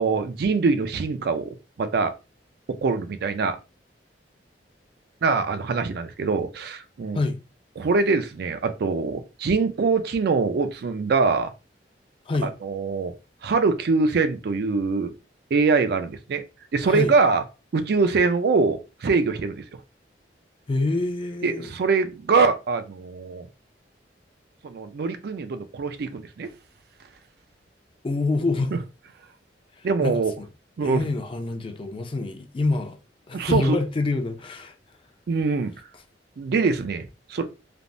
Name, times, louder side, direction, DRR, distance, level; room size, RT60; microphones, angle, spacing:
voice 1, 0.0-2.1 2.8-3.6 5.2-7.2 7.8-11.5 12.4-13.1 13.4-15.1 15.5-16.4 16.7-17.4 17.7-19.6 21.4-23.5 24.6-26.5 28.7-28.8 29.8-30.3 30.8-31.0 33.3-33.8 35.3-35.7 36.4-37.0 37.3-37.5, right 4 dB, 65° right, 0.4 m, -23 dB
voice 2, 16.8-17.1 20.7-21.7 28.0-28.7 29.8-30.5 30.8-33.0 33.3-34.8, left 3 dB, 30° left, 0.4 m, -26 dB
3.4 x 2.0 x 2.5 m
head